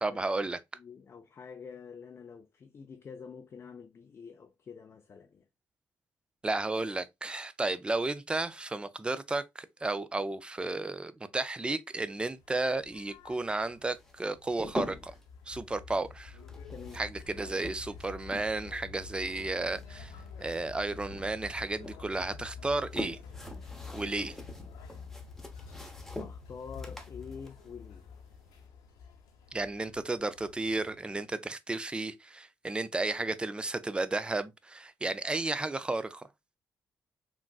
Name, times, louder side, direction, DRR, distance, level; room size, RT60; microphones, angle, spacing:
voice 1, 0.0-0.6 6.4-15.1 15.5-16.4 16.9-20.1 20.4-23.2 23.9-24.4 29.5-36.3, right 2 dB, 15° right, 0.4 m, -33 dB
voice 2, 0.7-5.4 16.7-17.0 26.2-28.1, left 6 dB, 45° left, 0.4 m, -47 dB
sound 1, 12.1-31.3, left 5 dB, 90° left, 0.9 m, -48 dB
sound 2, 14.0-15.3 16.4-18.7 19.0-20.8 21.1-22.0 22.5-28.6, left 1 dB, 5° left, 0.7 m, -44 dB
3.7 x 2.4 x 2.3 m
cardioid pair, 70°, 6 cm